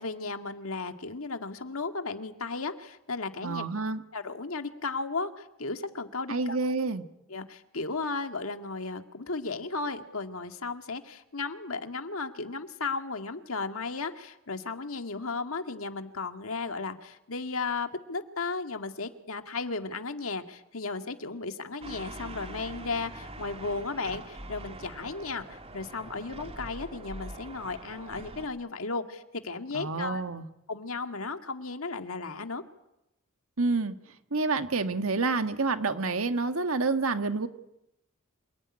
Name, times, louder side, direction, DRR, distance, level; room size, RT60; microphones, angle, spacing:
voice 1, 0.0-3.7 4.1-6.6 7.3-30.2 30.7-32.6, left 3 dB, 75° left, 7 dB, 2.1 m, -35 dB
voice 2, 3.4-4.0 6.3-7.0 29.7-30.4 33.6-34.0 34.3-37.5, right 3 dB, 75° right, 8 dB, 1.7 m, -28 dB
sound 1, 21.8-28.5, right 2 dB, 30° right, 2.3 m, -43 dB
27.0 x 19.5 x 9.9 m, 0.87 s
head